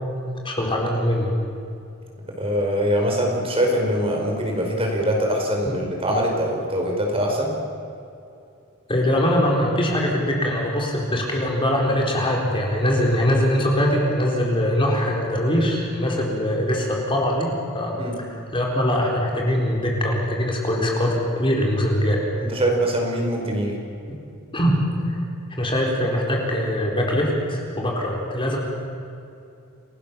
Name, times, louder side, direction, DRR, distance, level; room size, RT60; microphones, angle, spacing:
voice 1, 0.4-1.3 5.7-5.8 8.9-22.2 24.5-24.8 25.0-25.2 25.6-28.6, equal, 25° left, -1 dB, 4.3 m, -22 dB
voice 2, 2.4-7.5 18.0-18.1 22.5-23.7, equal, 25° right, 1 dB, 5.0 m, -23 dB
29.0 x 19.5 x 7.1 m, 2.6 s
head